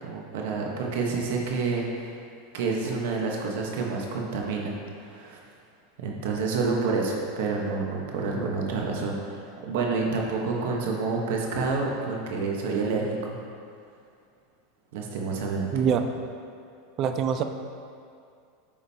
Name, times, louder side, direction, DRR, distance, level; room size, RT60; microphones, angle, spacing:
voice 1, 0.0-2.2 2.5-4.7 5.0-5.4 6.0-13.4 14.9-15.9, right 4 dB, 70° right, 0 dB, 1.1 m, -28 dB
voice 2, 15.7-16.0 17.0-17.4, right 8 dB, 40° right, 8 dB, 0.4 m, -24 dB
8.7 x 5.1 x 2.8 m, 2.3 s
supercardioid pair, 125°, 0 cm